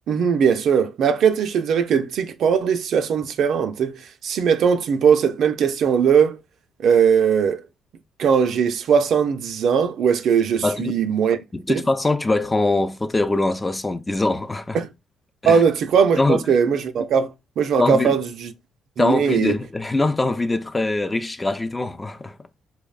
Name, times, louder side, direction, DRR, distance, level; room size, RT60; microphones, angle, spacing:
voice 1, 0.1-6.4 6.8-7.6 8.2-11.4 11.7-11.8 14.7-14.9 15.5-18.5 19.0-19.5, right 7 dB, 70° right, 0.4 m, -19 dB
voice 2, 10.6-11.0 11.5-14.8 15.4-15.6 16.2-16.4 17.8-18.2 19.0-22.4, left 2 dB, 20° left, 0.4 m, -22 dB
4.5 x 2.0 x 2.3 m
hypercardioid pair, 50°, 0 cm